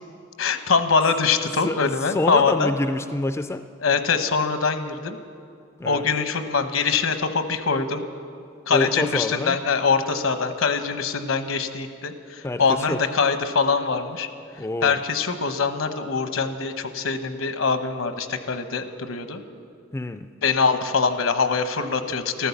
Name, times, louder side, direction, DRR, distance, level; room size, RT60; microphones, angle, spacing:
voice 1, 0.4-2.7 3.8-5.2 5.8-8.0 8.7-14.3 14.8-19.4 20.4-22.5, left 5 dB, 75° left, 9 dB, 0.9 m, -23 dB
voice 2, 2.1-3.6 5.8-6.1 8.7-9.6 12.4-13.0 14.6-15.0 19.9-20.3, left 2 dB, 15° left, 10 dB, 0.3 m, -26 dB
14.0 x 13.0 x 7.0 m, 2.3 s
head